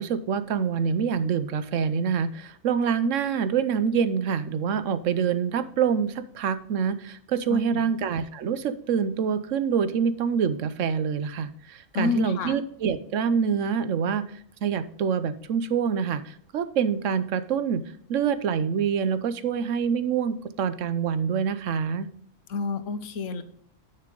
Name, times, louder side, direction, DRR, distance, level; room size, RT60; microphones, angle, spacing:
voice 1, 0.0-17.8 18.1-22.1, right 7 dB, 75° right, 13 dB, 1.1 m, -26 dB
voice 2, 7.5-7.9 11.9-12.5 22.5-23.4, left 3 dB, 75° left, 12 dB, 1.2 m, -29 dB
9.9 x 6.7 x 3.8 m, 0.63 s
omnidirectional pair, 1.3 m